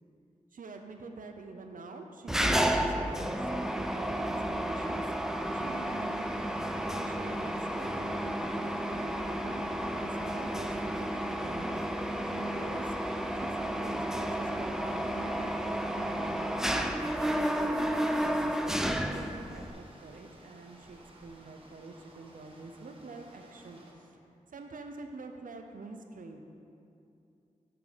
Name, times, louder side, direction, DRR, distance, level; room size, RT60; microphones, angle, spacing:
voice 1, 0.5-5.2 5.5-6.4 6.9-9.7 10.0-11.9 12.2-13.0 13.3-24.1 24.5-26.4, right 3 dB, 75° right, 5 dB, 0.6 m, -46 dB
Mechanisms, 2.3-19.7, right 1 dB, 5° right, 0.5 m, -32 dB
sound 1, 4.4-23.9, right 1 dB, 40° right, 1.4 m, -56 dB
6.7 x 5.9 x 5.2 m, 2.6 s
cardioid pair, 50°, 14 cm